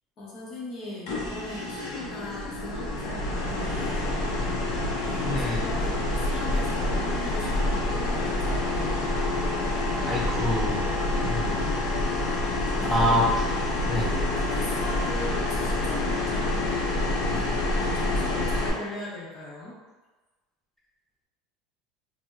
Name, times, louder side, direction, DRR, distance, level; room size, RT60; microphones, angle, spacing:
voice 1, 0.2-4.2 5.0-9.1 12.8-13.3 13.9-17.2 17.7-19.8, left 2 dB, 35° left, -6 dB, 0.9 m, -39 dB
sound 1, 1.1-18.7, left 2 dB, 65° left, 0.6 m, -27 dB
voice 2, 5.2-5.6 10.1-10.9 11.2-11.6 12.8-13.5 13.9-14.1, left 1 dB, 5° left, -4 dB, 0.5 m, -26 dB
4.1 x 2.1 x 2.3 m, 1.2 s
cardioid pair, 165°, 0 cm